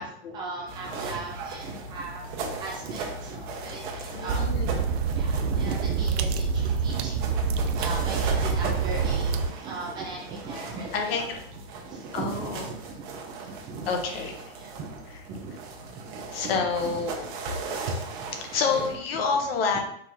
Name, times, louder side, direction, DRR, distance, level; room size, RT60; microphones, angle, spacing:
voice 1, 0.0-11.3 11.5-14.3 14.6-17.0 18.2-18.4, right 3 dB, 15° right, -3 dB, 0.3 m, -38 dB
sound 1, 0.7-19.0, right 3 dB, 50° right, 0.9 m, -38 dB
voice 2, 4.1-4.7 10.9-11.4 12.1-12.7 13.9-14.3 16.3-17.3 18.3-19.8, left 5 dB, 65° left, 3 dB, 1.0 m, -28 dB
sound 2, 4.3-9.5, right 5 dB, 80° right, 0.5 m, -26 dB
4.5 x 3.6 x 2.6 m, 0.70 s
supercardioid pair, 155°, 31 cm